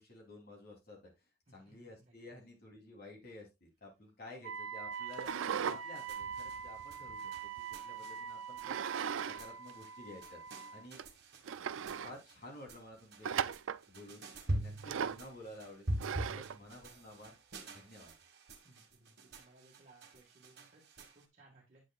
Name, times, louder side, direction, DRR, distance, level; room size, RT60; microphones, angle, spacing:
voice 1, 0.0-7.3 7.6-8.8 9.2-10.4 10.7-11.0 12.0-13.5 13.9-17.4 17.6-18.1, left 1 dB, 45° left, -1 dB, 3.4 m, -53 dB
voice 2, 1.5-2.1 18.6-21.8, right 2 dB, 35° right, -2 dB, 1.8 m, -64 dB
Wind instrument woodwind instrument, 4.4-10.9, right 6 dB, 90° right, 1.1 m, -44 dB
sound 1, 4.9-21.2, right 1 dB, 55° right, 1.6 m, -45 dB
sound 2, 5.1-5.8 6.2-7.6 8.6-9.4 9.7-9.8 10.5-10.6 11.0-11.1 11.4-12.1 13.2-13.8 14.8-15.3 16.0-16.6, right 7 dB, 70° right, 0.4 m, -37 dB
9.1 x 8.2 x 2.4 m, 0.22 s
head